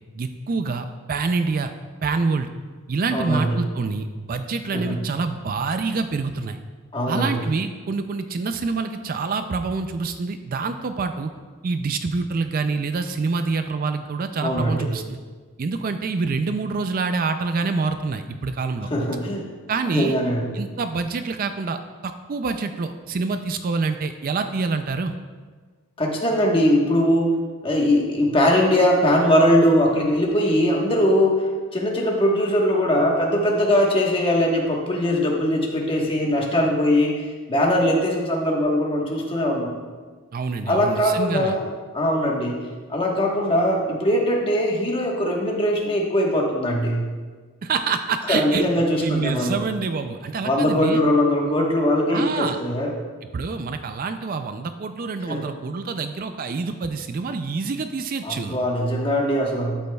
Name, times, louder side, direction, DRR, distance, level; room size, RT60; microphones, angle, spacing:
voice 1, 0.1-1.7 2.0-2.5 2.9-6.6 7.1-11.3 11.6-15.2 15.6-18.9 19.7-20.2 20.5-25.1 40.3-41.6 47.6-48.7 49.0-51.0 52.1-52.6 53.3-58.6, right 4 dB, 40° right, 8 dB, 0.4 m, -26 dB
voice 2, 3.1-3.6 4.7-5.0 6.9-7.4 14.4-14.9 18.9-19.5 19.9-20.6 26.0-27.4 27.6-31.4 31.7-37.2 37.5-39.7 40.7-41.7 41.9-42.6 42.9-47.1 48.3-49.6 50.4-52.9 55.3-55.4 58.2-59.8, equal, 25° left, -1 dB, 1.2 m, -21 dB
11.5 x 8.4 x 2.3 m, 1.5 s
head